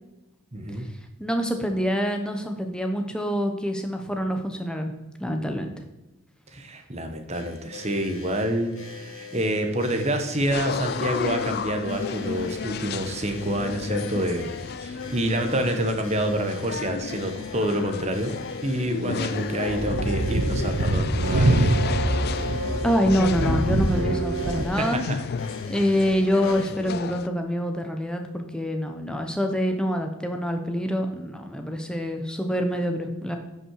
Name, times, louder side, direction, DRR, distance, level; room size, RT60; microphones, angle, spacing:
voice 1, 0.5-0.8 6.5-18.4 18.6-22.2 24.8-25.2, right 1 dB, 30° right, 5 dB, 1.1 m, -27 dB
voice 2, 1.2-4.9 5.2-5.7 22.8-25.0 25.7-33.4, equal, 5° left, 4 dB, 0.9 m, -26 dB
sound 1, 7.3-26.7, left 5 dB, 65° left, 1.8 m, -43 dB
sound 2, 10.4-27.3, left 6 dB, 45° left, 0.3 m, -33 dB
sound 3, 19.7-24.6, right 1 dB, 60° right, 0.9 m, -24 dB
9.6 x 5.7 x 4.7 m, 1.0 s
head